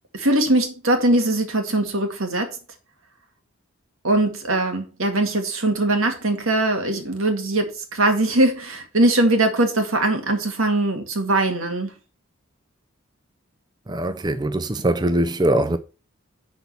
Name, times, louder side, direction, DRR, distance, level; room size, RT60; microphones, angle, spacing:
voice 1, 0.1-2.6 4.0-11.9, right 2 dB, 90° right, 2.1 m, -21 dB
voice 2, 13.9-15.8, right 1 dB, 20° right, 0.5 m, -22 dB
10.5 x 4.3 x 5.3 m
head